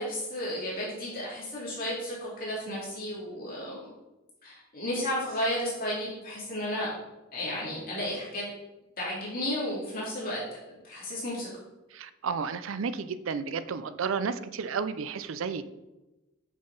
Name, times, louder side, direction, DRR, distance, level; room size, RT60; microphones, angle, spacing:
voice 1, 0.0-3.9 4.4-6.9 7.3-8.4 9.0-10.4 10.7-11.5, left 1 dB, 45° left, -6 dB, 2.4 m, -33 dB
voice 2, 11.9-15.6, right 5 dB, 75° right, 13 dB, 0.4 m, -32 dB
7.3 x 5.9 x 3.9 m, 1.1 s
head